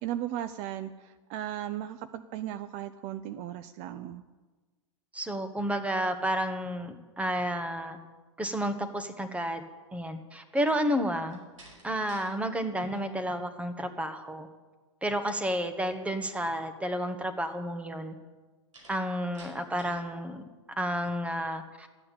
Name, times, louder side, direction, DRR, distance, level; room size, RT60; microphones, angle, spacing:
voice 1, 0.0-4.2, right 12 dB, 45° right, 12 dB, 0.6 m, -36 dB
voice 2, 5.1-8.0 8.4-9.6 9.9-11.4 11.8-14.5 15.0-18.1 18.9-20.4 20.8-21.9, equal, 10° right, 8 dB, 1.4 m, -31 dB
Slam, 11.2-12.3 12.7-13.1 18.7-20.1, right 1 dB, 85° right, 5.2 m, -52 dB
13.0 x 8.6 x 8.4 m, 1.3 s
figure-of-eight pair, 90°, 16 cm